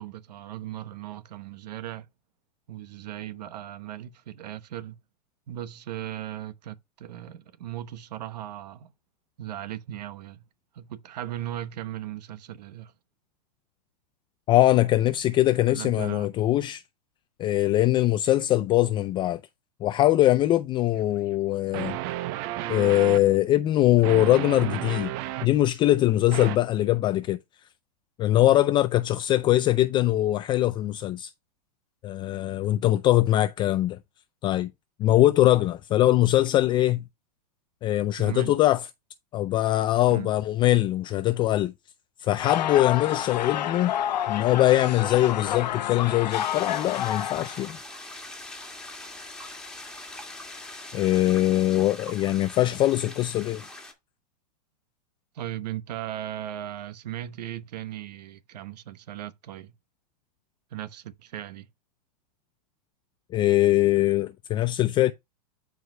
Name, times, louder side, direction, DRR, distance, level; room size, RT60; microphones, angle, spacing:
voice 1, 0.0-2.1 2.7-5.0 5.5-8.9 9.4-10.4 10.7-12.9 15.7-16.3 38.2-38.5 40.1-40.3 55.3-59.7 60.7-61.7, right 12 dB, 75° right, 1.0 m, -37 dB
voice 2, 14.5-16.8 17.4-19.4 19.8-22.0 22.7-25.1 25.4-27.4 28.2-31.3 32.0-34.0 34.4-34.7 35.0-37.0 37.8-38.8 39.3-41.7 42.2-43.9 44.3-47.8 50.9-53.6 63.3-65.1, left 15 dB, 25° left, 0.3 m, -22 dB
sound 1, 20.9-21.0 21.7-23.2 24.0-25.5 26.3-26.6, right 15 dB, 45° right, 0.7 m, -32 dB
sound 2, 42.4-47.7, left 11 dB, 85° left, 0.8 m, -29 dB
sound 3, 46.3-53.9, left 2 dB, 5° left, 2.0 m, -42 dB
13.5 x 4.9 x 2.2 m
hypercardioid pair, 130°, 21 cm